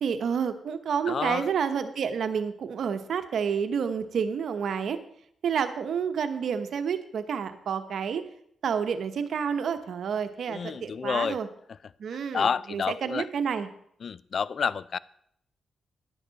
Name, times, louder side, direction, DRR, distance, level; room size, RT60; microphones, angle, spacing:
voice 1, 0.0-5.0 5.4-8.2 8.6-11.5 12.0-13.7, right 7 dB, 70° right, 9 dB, 1.0 m, -29 dB
voice 2, 1.1-1.5 10.5-11.4 12.3-13.3 14.0-15.0, left 6 dB, 55° left, 20 dB, 0.4 m, -29 dB
11.0 x 10.0 x 4.0 m, 0.70 s
cardioid pair, 75°, 0 cm